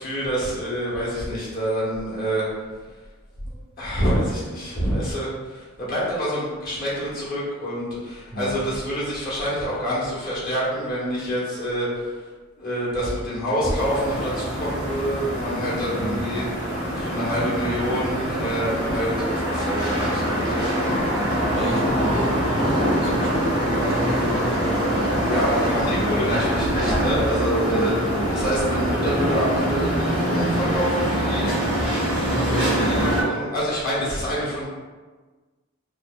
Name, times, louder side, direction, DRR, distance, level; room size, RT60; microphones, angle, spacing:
voice 1, 0.0-2.4 3.8-12.1 12.6-16.5 16.9-21.0 25.2-31.5 32.3-34.7, equal, 45° left, -8 dB, 0.9 m, -27 dB
sound 1, 13.7-33.2, equal, 85° left, 1.1 m, -24 dB
voice 2, 16.0-16.3 21.5-25.3 26.0-26.2 27.6-28.3 32.3-33.3, right 1 dB, 30° right, -4 dB, 0.4 m, -31 dB
2.9 x 2.1 x 2.2 m, 1.3 s
head